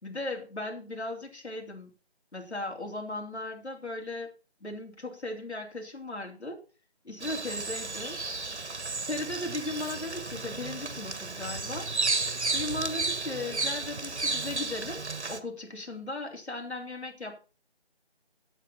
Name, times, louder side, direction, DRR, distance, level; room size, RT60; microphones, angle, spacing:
voice 1, 0.0-1.9 2.3-4.3 4.6-6.6 7.0-8.2 9.1-11.9 12.5-17.6, left 2 dB, 80° left, 2 dB, 3.6 m, -37 dB
Bird vocalization bird call bird song, 7.2-15.4, right 3 dB, 85° right, 1.6 m, -33 dB
8.2 x 8.2 x 5.7 m, 0.34 s
figure-of-eight pair, 175°, 33 cm